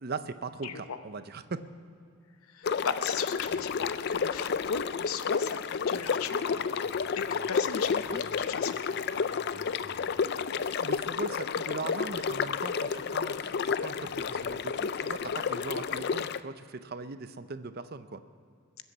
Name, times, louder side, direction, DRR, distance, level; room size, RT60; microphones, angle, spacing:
voice 1, 0.0-1.6 8.1-8.3 10.6-18.2, right 4 dB, 45° right, 11 dB, 0.6 m, -39 dB
voice 2, 0.6-1.0 2.5-6.7 7.2-8.7, left 6 dB, 80° left, 10 dB, 0.7 m, -36 dB
sound 1, 2.6-16.4, left 6 dB, 50° left, 0.3 m, -31 dB
sound 2, 3.4-15.7, equal, 20° right, 3.4 m, -59 dB
21.5 x 8.2 x 7.0 m, 2.4 s
head